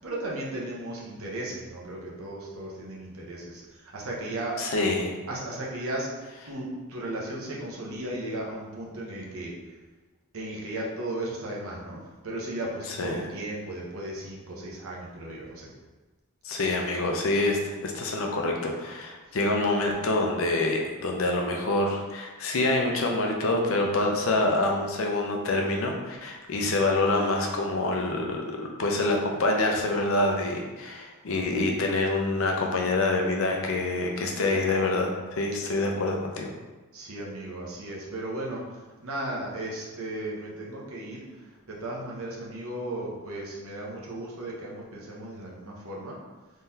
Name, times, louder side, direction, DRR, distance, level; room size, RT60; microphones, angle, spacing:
voice 1, 0.0-4.7 5.3-6.1 6.4-9.5 10.3-15.7 36.9-41.2 41.7-46.2, right 1 dB, 70° right, -3 dB, 0.9 m, -35 dB
voice 2, 4.6-5.1 13.0-13.2 16.4-36.5, left 2 dB, 65° left, 1 dB, 0.6 m, -26 dB
3.8 x 3.2 x 2.7 m, 1.2 s
head